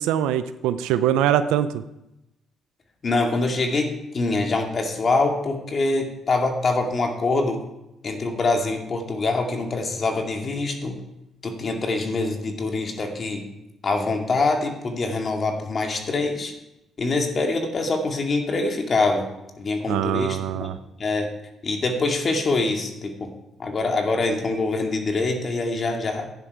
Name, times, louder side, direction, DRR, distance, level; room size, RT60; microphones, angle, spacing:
voice 1, 0.0-1.8 19.9-20.8, right 11 dB, 85° right, 12 dB, 0.5 m, -23 dB
voice 2, 3.0-7.6 8.0-11.0 11.4-13.4 13.8-16.5 17.0-19.3 19.6-20.7 21.0-21.3 21.6-23.3 23.6-26.3, left 3 dB, 45° left, 3 dB, 2.2 m, -24 dB
11.5 x 9.9 x 4.7 m, 0.90 s
supercardioid pair, 60°, 0 cm